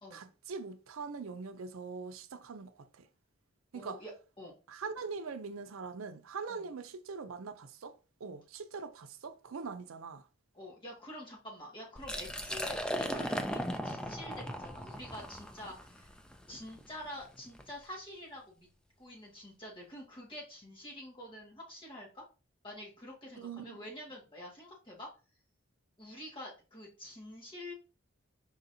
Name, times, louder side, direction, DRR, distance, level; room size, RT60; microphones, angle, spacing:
voice 1, 0.1-3.1 3.7-4.0 4.7-10.3 23.4-23.8, right 5 dB, 85° right, 0.5 m, -42 dB
voice 2, 3.7-4.6 6.5-6.6 10.5-16.2 16.5-18.7 19.0-22.2 22.6-25.1 26.0-27.7, left 1 dB, 25° left, 1.8 m, -47 dB
Liquid, 12.0-17.7, equal, 5° left, 0.3 m, -38 dB
4.9 x 4.0 x 2.7 m
head